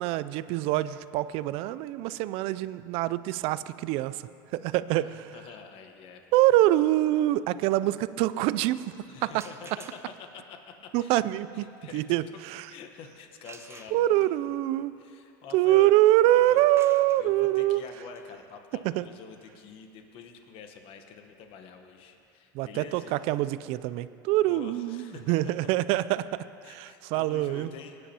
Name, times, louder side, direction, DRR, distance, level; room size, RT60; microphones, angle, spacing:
voice 1, 0.0-4.2 4.5-5.1 6.3-8.9 9.2-9.4 10.9-11.6 11.9-12.6 13.9-14.9 15.5-17.8 18.8-19.1 22.5-27.7, right 15 dB, 60° right, 16 dB, 0.4 m, -25 dB
voice 2, 5.0-6.2 8.7-11.1 11.5-12.0 12.7-14.5 15.0-15.9 16.3-16.6 17.2-23.2 24.4-25.7 26.6-28.0, left 6 dB, 55° left, 5 dB, 1.1 m, -47 dB
sound 1, 9.2-10.4 13.4-14.4 16.3-22.0, right 5 dB, 25° right, 0.7 m, -52 dB
19.0 x 9.9 x 2.9 m, 2.5 s
supercardioid pair, 100°, 11 cm